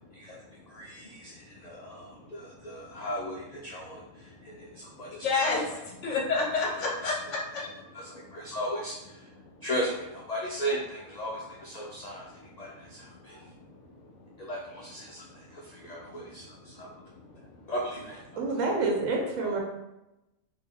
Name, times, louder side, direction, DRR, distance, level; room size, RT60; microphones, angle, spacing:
voice 1, 0.7-5.3 5.7-5.8 7.0-7.1 7.9-9.3 9.6-13.5 14.4-16.9 17.7-18.2 19.4-19.6, equal, 90° left, -4 dB, 0.3 m, -37 dB
voice 2, 1.8-2.3 2.8-3.0 4.4-7.9 12.8-12.9 13.4-14.1 15.7-17.6, left 3 dB, 65° left, -1 dB, 1.1 m, -33 dB
voice 3, 18.4-19.6, right 3 dB, 70° right, 0 dB, 1.1 m, -28 dB
3.2 x 2.6 x 3.6 m, 0.94 s
omnidirectional pair, 1.4 m